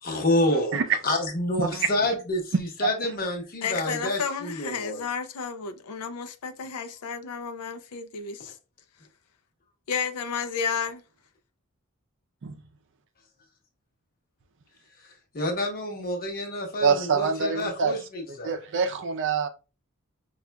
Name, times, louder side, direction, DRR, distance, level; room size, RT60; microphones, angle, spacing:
voice 1, 0.0-0.8 1.0-5.0 15.3-18.5, left 1 dB, 40° left, 1.0 m, -28 dB
voice 2, 3.6-8.5 9.9-11.0, left 6 dB, 85° left, 0.5 m, -32 dB
voice 3, 16.8-18.0 18.4-19.5, right 5 dB, 60° right, 0.5 m, -25 dB
4.9 x 2.4 x 2.2 m
head